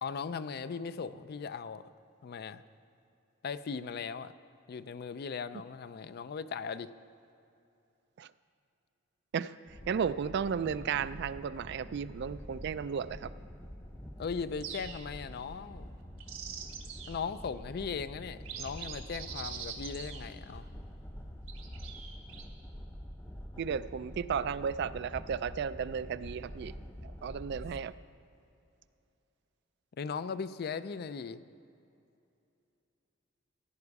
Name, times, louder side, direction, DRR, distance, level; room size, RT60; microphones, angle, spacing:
voice 1, 0.0-1.9 2.2-2.6 3.4-4.3 4.7-6.9 14.2-15.9 17.1-20.7 30.0-31.4, left 5 dB, 50° left, 0.4 m, -38 dB
sound 1, 9.7-27.8, equal, 10° left, 0.6 m, -46 dB
voice 2, 9.9-13.3 23.6-26.8 27.0-27.9, right 7 dB, 55° right, 0.3 m, -34 dB
sound 2, 14.6-15.3 16.0-17.2 17.8-17.9 18.4-20.7 21.5-22.4, right 7 dB, 85° right, 1.4 m, -44 dB
16.0 x 9.7 x 4.7 m
head